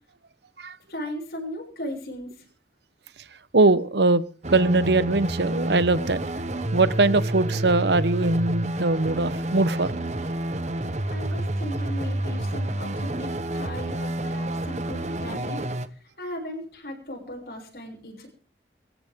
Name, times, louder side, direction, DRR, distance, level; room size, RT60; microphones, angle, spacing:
voice 1, 0.9-2.5 11.1-18.3, left 1 dB, 65° left, -1 dB, 7.0 m, -37 dB
voice 2, 3.5-4.2 4.5-6.2 6.7-10.0, right 2 dB, 80° right, 15 dB, 1.0 m, -21 dB
sound 1, 4.4-15.9, right 1 dB, 40° right, 1.1 m, -29 dB
25.5 x 14.5 x 3.8 m, 0.40 s
head